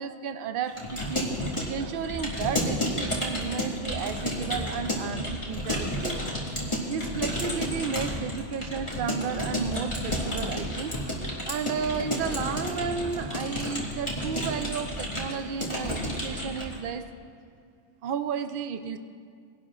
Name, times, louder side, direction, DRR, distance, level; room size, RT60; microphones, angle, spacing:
voice 1, 0.0-1.3 1.6-6.2 6.9-10.9 11.5-17.1 18.0-19.0, right 6 dB, 60° right, 9 dB, 0.5 m, -33 dB
Keyboard (musical) / Computer keyboard, 0.7-16.8, equal, 20° left, 2.1 m, -31 dB
20.5 x 11.5 x 2.5 m, 2.2 s
omnidirectional pair, 1.5 m